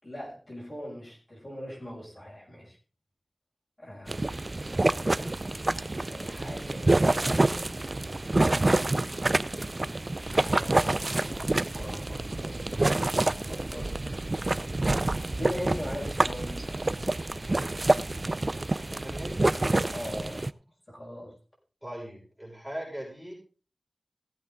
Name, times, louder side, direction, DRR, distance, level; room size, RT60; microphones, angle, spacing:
voice 1, 0.0-2.8 3.8-4.4 6.1-7.7 10.2-12.6 13.5-13.9 15.3-16.9 19.9-20.5 20.9-21.3, equal, 30° left, -4 dB, 6.8 m, -40 dB
sound 1, 4.1-20.5, right 2 dB, 40° right, 0.5 m, -27 dB
voice 2, 18.9-19.6 21.8-23.3, right 1 dB, 5° left, -4 dB, 5.7 m, -40 dB
16.0 x 8.6 x 3.8 m, 0.37 s
wide cardioid pair, 60°, 0 cm